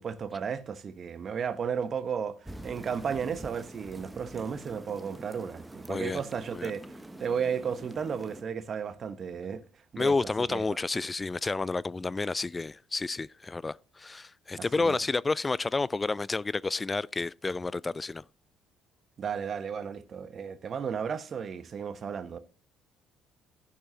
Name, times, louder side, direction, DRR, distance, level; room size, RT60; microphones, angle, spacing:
voice 1, 0.0-9.6 9.9-10.1 10.5-10.8 14.8-15.0 19.2-22.4, right 7 dB, 40° right, 1.0 m, -34 dB
sound 1, 2.5-8.4, right 1 dB, 10° right, 1.1 m, -45 dB
voice 2, 5.9-6.2 6.5-6.7 10.0-18.2, left 3 dB, 20° left, 0.3 m, -30 dB
15.5 x 5.8 x 2.8 m
figure-of-eight pair, 50°, 0 cm